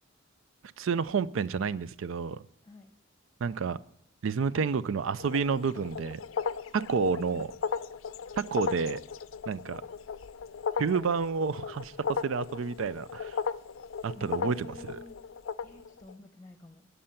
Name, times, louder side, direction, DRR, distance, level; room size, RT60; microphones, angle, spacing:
voice 1, 0.8-2.4 3.4-3.8 4.2-6.2 6.7-7.5 8.5-9.0 9.5-9.8 10.8-13.4 14.0-15.0, right 5 dB, 80° right, 17 dB, 0.4 m, -30 dB
voice 2, 2.6-2.9 14.1-15.2 15.6-16.9, left 1 dB, 15° left, 6 dB, 0.8 m, -50 dB
sound 1, 5.2-16.1, left 6 dB, 85° left, 0.5 m, -36 dB
16.5 x 5.6 x 5.7 m, 0.70 s
head